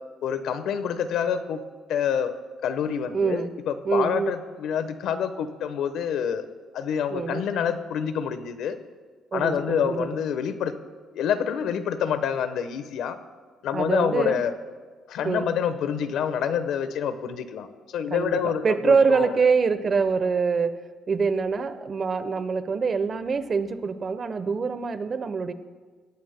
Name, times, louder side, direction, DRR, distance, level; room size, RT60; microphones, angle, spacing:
voice 1, 0.2-1.6 1.9-2.3 2.6-6.4 6.7-8.8 9.3-10.7 11.1-13.2 13.6-14.5 15.1-19.4, left 8 dB, 75° left, 10 dB, 1.0 m, -27 dB
voice 2, 3.1-3.5 3.8-4.3 7.1-7.4 9.3-10.1 13.7-14.4 15.2-15.5 18.1-25.5, right 5 dB, 40° right, 12 dB, 0.9 m, -25 dB
23.5 x 17.5 x 2.2 m, 1.5 s
cardioid pair, 105°, 0 cm